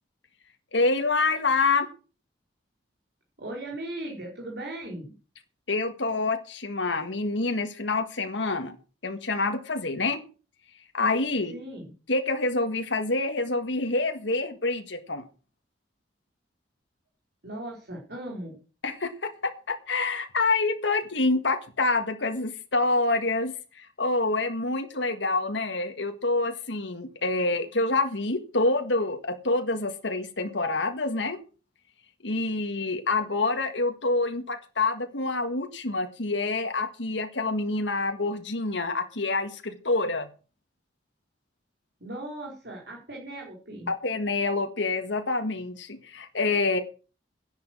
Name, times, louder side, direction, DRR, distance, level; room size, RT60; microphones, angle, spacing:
voice 1, 0.7-1.9 5.7-8.8 9.0-10.2 10.9-11.5 12.1-15.2 18.8-31.4 32.2-40.3 43.9-46.8, left 3 dB, 85° left, 6 dB, 1.7 m, -27 dB
voice 2, 3.4-5.1 11.5-11.9 17.4-18.6 42.0-43.9, right 1 dB, 60° right, -2 dB, 4.8 m, -38 dB
10.5 x 10.5 x 6.3 m, 0.35 s
head